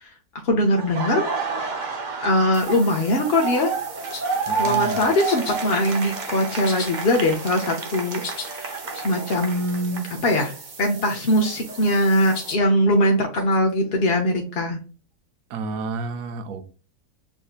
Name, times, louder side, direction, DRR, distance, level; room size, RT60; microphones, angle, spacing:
voice 1, 0.4-1.3 2.2-3.7 4.6-10.5 10.8-14.8, left 1 dB, 50° left, 0.8 m, -21 dB
Laughter, 0.8-10.6 10.9-12.9, right 5 dB, 45° right, 0.6 m, -30 dB
sound 1, 2.5-12.5, right 4 dB, 90° right, 1.8 m, -42 dB
sound 2, 4.1-4.4 5.3-5.6 5.9-6.4 6.6-7.6 8.0-8.5 8.8-8.9 9.1-9.2 9.6-10.0 10.2-10.7 11.2-11.8 12.3-12.6 13.4-13.6, left 4 dB, 75° left, 1.6 m, -36 dB
voice 2, 4.5-5.0 15.5-16.7, right 4 dB, 70° right, 1.1 m, -31 dB
7.0 x 2.7 x 2.4 m
omnidirectional pair, 1.6 m